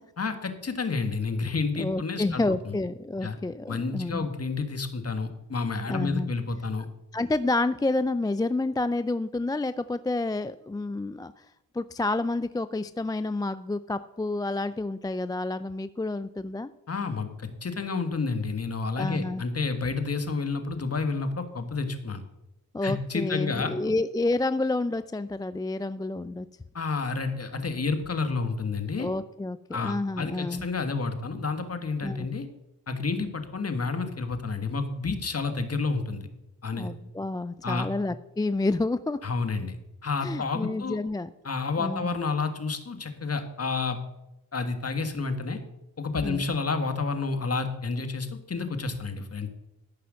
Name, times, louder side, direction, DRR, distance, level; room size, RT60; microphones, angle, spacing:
voice 1, 0.2-2.8 3.2-3.4 3.7-6.8 16.9-22.2 22.8-23.7 26.7-29.1 29.7-32.5 32.9-36.3 36.6-36.9 37.6-37.9 39.2-39.7 40.0-41.0 41.4-44.0 44.5-45.6 46.0-49.5, left 4 dB, 40° left, 8 dB, 1.7 m, -30 dB
voice 2, 1.8-4.3 5.9-6.3 7.1-11.3 11.7-16.7 19.0-19.4 22.7-26.5 29.0-30.7 32.0-32.3 36.7-39.2 40.2-41.3 41.8-42.1 46.2-46.4, left 2 dB, 10° left, 13 dB, 0.4 m, -29 dB
14.0 x 5.6 x 6.3 m, 0.91 s
cardioid pair, 55°, 38 cm